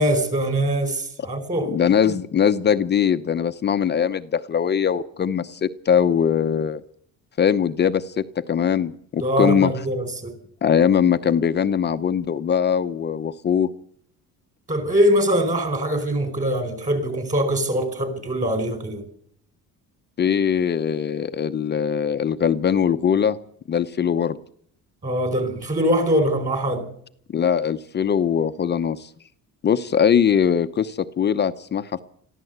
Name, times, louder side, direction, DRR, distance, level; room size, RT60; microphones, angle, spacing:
voice 1, 0.0-1.7 9.2-10.3 14.7-19.0 25.0-26.8, equal, 20° right, 4.9 m, -22 dB
voice 2, 1.7-6.8 7.4-9.7 10.6-13.7 20.2-23.4 23.7-24.4 27.3-29.1 29.6-32.0, left 8 dB, 30° left, 0.8 m, -21 dB
22.5 x 14.5 x 8.0 m
cardioid pair, 165°, 34 cm